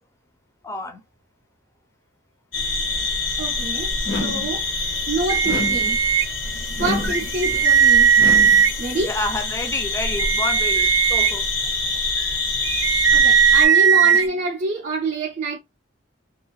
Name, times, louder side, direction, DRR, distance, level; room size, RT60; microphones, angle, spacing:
voice 1, 0.6-1.0 6.5-6.8 7.5-7.6 9.0-11.4, left 2 dB, 15° left, 0.4 m, -29 dB
sound 1, 2.5-13.7, left 3 dB, 85° left, 1.1 m, -26 dB
voice 2, 3.4-3.9 4.2-4.6 5.1-6.0 6.8-8.1 8.8-9.2 12.8-15.6, right 2 dB, 45° right, 0.4 m, -26 dB
sound 2, 4.0-4.6 5.4-6.0 6.8-7.3 8.2-8.7, left 2 dB, 65° left, 0.6 m, -28 dB
sound 3, 5.3-6.2 7.0-8.7 10.0-11.3 12.6-14.3, right 8 dB, 90° right, 0.6 m, -17 dB
2.5 x 2.4 x 3.0 m
head